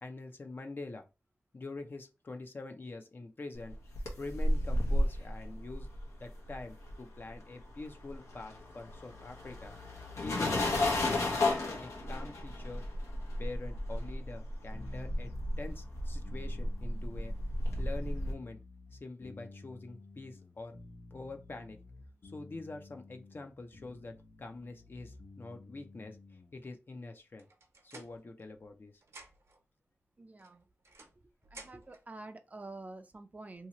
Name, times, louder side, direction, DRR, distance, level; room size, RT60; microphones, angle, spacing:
voice 1, 0.0-1.0 1.5-3.7 4.2-5.9 6.2-9.8 10.2-11.4 11.8-12.8 13.4-17.3 17.8-18.6 18.9-20.8 21.1-21.8 22.2-27.5 27.9-28.9, left 3 dB, 45° left, 5 dB, 0.5 m, -45 dB
sound 1, 3.7-7.3 7.6-18.3, left 1 dB, 90° left, 0.9 m, -33 dB
sound 2, 14.7-26.6, left 2 dB, 65° left, 1.1 m, -52 dB
sound 3, 27.4-28.8 29.0-29.6 30.4-32.0, right 2 dB, 75° right, 0.9 m, -54 dB
voice 2, 30.2-30.6 31.5-33.7, right 2 dB, 30° right, 7 dB, 0.5 m, -47 dB
2.8 x 2.8 x 2.9 m, 0.29 s
wide cardioid pair, 90°, 5 cm